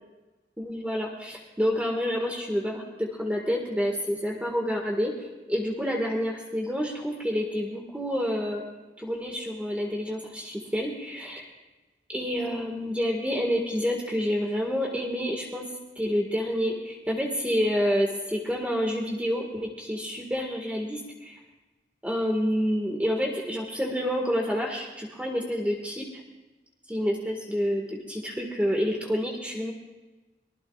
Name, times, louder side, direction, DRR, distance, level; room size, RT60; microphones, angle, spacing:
voice 1, 0.6-8.6 9.0-11.4 12.1-21.4 22.0-26.2 26.9-29.7, equal, 10° right, -1 dB, 1.7 m, -28 dB
23.5 x 20.0 x 2.4 m, 1.2 s
head